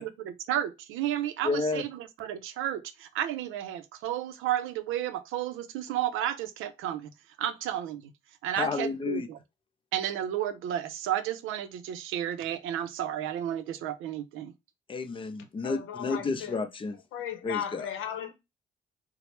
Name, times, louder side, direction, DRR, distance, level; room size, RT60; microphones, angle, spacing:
voice 1, 0.0-7.1 7.4-8.1 8.4-9.4 9.9-14.5, right 11 dB, 90° right, 0.4 m, -32 dB
voice 2, 1.4-1.9 8.6-9.3 14.9-17.0 17.4-17.9, left 4 dB, 25° left, 0.5 m, -31 dB
voice 3, 15.6-16.6 17.1-18.3, left 9 dB, 90° left, 0.7 m, -36 dB
3.1 x 2.0 x 2.9 m
cardioid pair, 90°, 20 cm